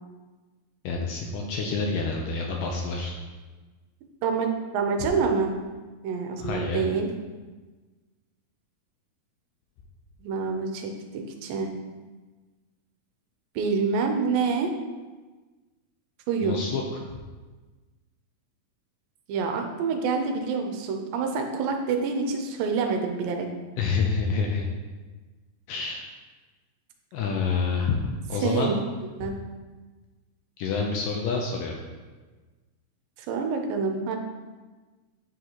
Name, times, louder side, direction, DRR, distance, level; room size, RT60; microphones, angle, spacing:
voice 1, 0.8-3.1 6.4-6.8 16.4-16.8 23.8-24.7 25.7-26.0 27.1-28.7 30.6-31.8, left 4 dB, 80° left, 1 dB, 2.0 m, -27 dB
voice 2, 4.2-5.5 6.0-7.1 10.2-11.7 13.6-14.7 16.3-16.6 19.3-23.5 28.4-28.8 29.2-29.3 33.3-34.2, right 5 dB, 80° right, 3 dB, 2.3 m, -27 dB
9.3 x 4.0 x 2.9 m, 1.3 s
omnidirectional pair, 4.2 m